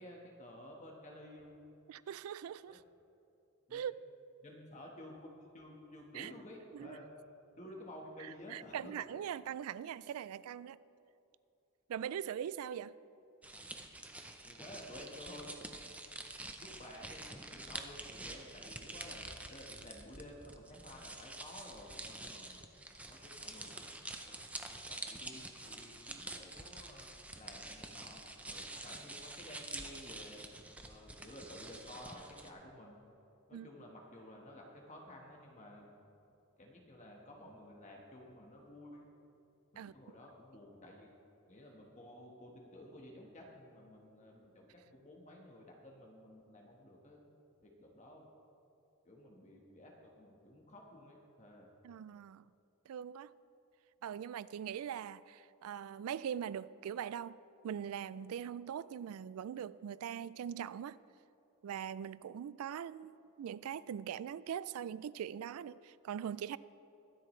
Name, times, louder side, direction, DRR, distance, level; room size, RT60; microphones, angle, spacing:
voice 1, 0.0-1.6 2.7-2.8 3.7-3.8 4.4-5.3 5.5-7.1 7.5-9.0 14.4-15.5 16.6-22.6 23.1-24.4 24.9-27.1 27.3-30.5 30.9-33.0 33.5-35.9 36.6-39.1 39.7-41.1 41.5-47.3 47.6-48.3 49.0-51.7, left 1 dB, 35° left, 1.3 m, -53 dB
voice 2, 1.9-2.8 3.7-3.9 6.1-6.3 6.7-7.0 8.5-10.8 11.9-12.9 33.5-33.7 39.8-39.9 51.8-52.5 52.9-53.3 54.0-57.4 57.6-61.0 61.6-66.6, right 9 dB, 85° right, 0.3 m, -41 dB
sound 1, 13.4-32.5, right 2 dB, 5° right, 0.5 m, -47 dB
23.0 x 8.2 x 3.2 m
head